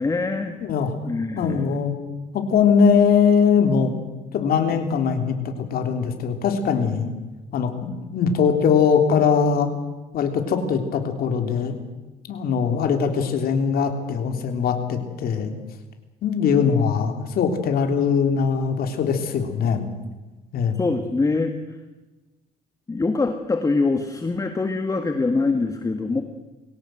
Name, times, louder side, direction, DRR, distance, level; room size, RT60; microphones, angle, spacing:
voice 1, 0.0-0.6 1.1-1.8 20.8-21.5 22.9-26.2, left 3 dB, 20° left, 7 dB, 1.8 m, -24 dB
voice 2, 0.6-1.0 1.4-1.9 2.3-3.9 4.3-7.1 7.5-9.7 10.1-11.7 12.3-15.5 16.2-19.8 20.5-20.8, left 6 dB, 65° left, 6 dB, 3.5 m, -21 dB
23.0 x 17.0 x 8.0 m, 1.1 s
cardioid pair, 110°, 17 cm